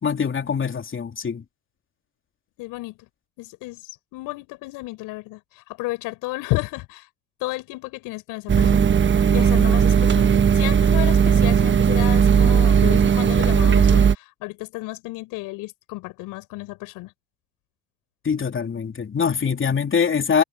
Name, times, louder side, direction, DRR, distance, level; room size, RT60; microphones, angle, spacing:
voice 1, 0.0-1.4 18.3-20.4, left 6 dB, 35° left, 3.5 m, -23 dB
voice 2, 2.6-3.0 3.4-7.1 7.4-8.9 9.3-10.3 10.5-17.1, left 21 dB, 75° left, 7.6 m, -32 dB
sound 1, 8.5-14.1, right 7 dB, 35° right, 1.3 m, -17 dB
hypercardioid pair, 60°, 34 cm